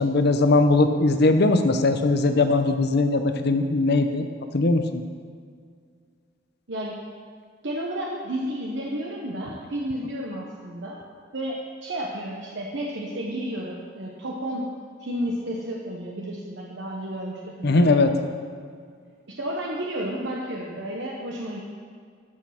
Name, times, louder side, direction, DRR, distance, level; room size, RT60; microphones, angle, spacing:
voice 1, 0.0-4.2 4.5-5.0 17.6-18.1, left 2 dB, 60° left, 8 dB, 0.8 m, -20 dB
voice 2, 6.7-7.0 7.6-11.0 11.3-14.7 15.0-18.2 19.3-21.6, right 1 dB, 65° right, -2 dB, 1.2 m, -32 dB
13.5 x 6.4 x 5.9 m, 2.1 s
head